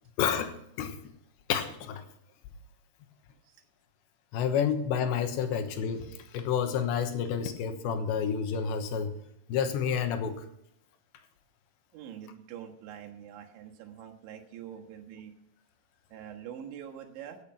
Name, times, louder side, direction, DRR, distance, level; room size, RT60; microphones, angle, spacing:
voice 1, 0.2-1.0 1.5-2.0 4.3-9.1 9.5-10.3, left 7 dB, 85° left, 7 dB, 3.4 m, -29 dB
voice 2, 10.0-10.3 11.9-15.3 16.1-17.4, right 9 dB, 90° right, 3 dB, 3.9 m, -45 dB
16.0 x 8.2 x 5.9 m, 0.73 s
omnidirectional pair, 5.1 m